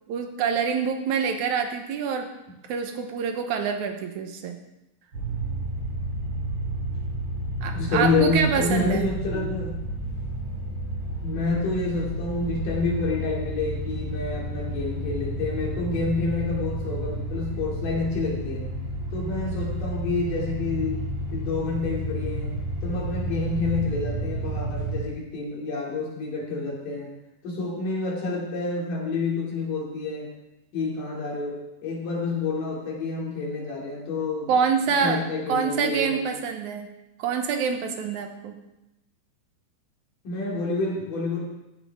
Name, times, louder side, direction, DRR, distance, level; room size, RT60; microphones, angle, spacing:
voice 1, 0.1-2.3 2.7-4.6 7.6-9.0 34.5-35.2 35.5-36.9 37.2-38.6, right 6 dB, 65° right, 5 dB, 2.4 m, -26 dB
sound 1, 5.1-25.0, right 1 dB, 35° right, 5.6 m, -31 dB
voice 2, 7.7-9.8 11.2-18.6 19.1-21.0 21.3-27.1 27.4-30.3 30.7-34.5 35.0-36.2 40.2-41.4, left 3 dB, 70° left, -3 dB, 4.5 m, -28 dB
16.5 x 9.9 x 3.7 m, 0.92 s
omnidirectional pair, 3.9 m